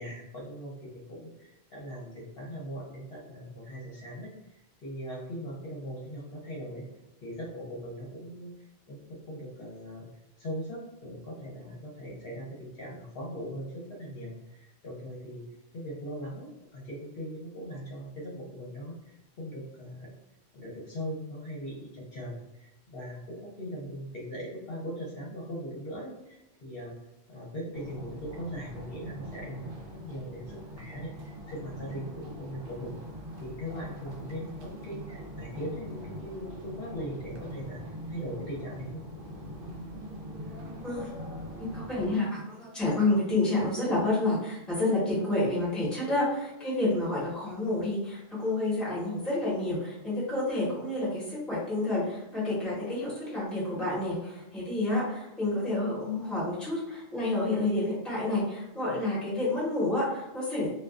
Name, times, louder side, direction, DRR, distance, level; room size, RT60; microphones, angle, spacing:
voice 1, 0.0-6.9 7.2-8.5 8.9-9.0 9.3-10.1 10.4-15.4 15.7-20.1 20.5-26.9 27.3-33.0 33.4-37.8 38.1-39.0, equal, 60° left, -4 dB, 0.9 m, -40 dB
tunnel ambiance steps suitcase, 27.7-42.2, equal, 60° right, 0.7 m, -42 dB
voice 2, 40.8-41.2 41.6-60.7, left 2 dB, ahead, -8 dB, 0.9 m, -29 dB
2.3 x 2.3 x 2.4 m, 0.95 s
omnidirectional pair, 1.1 m